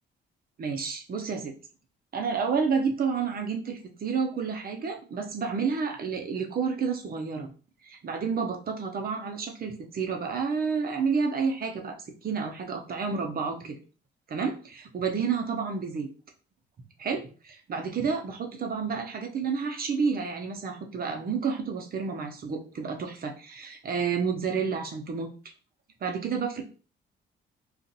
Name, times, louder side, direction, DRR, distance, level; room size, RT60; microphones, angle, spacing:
voice 1, 0.6-1.5 2.1-7.5 7.8-12.0 12.2-13.8 14.3-16.1 17.0-25.3 26.0-26.6, right 5 dB, 50° right, 4 dB, 0.8 m, -30 dB
2.6 x 2.5 x 4.0 m, 0.37 s
cardioid pair, 90°, 20 cm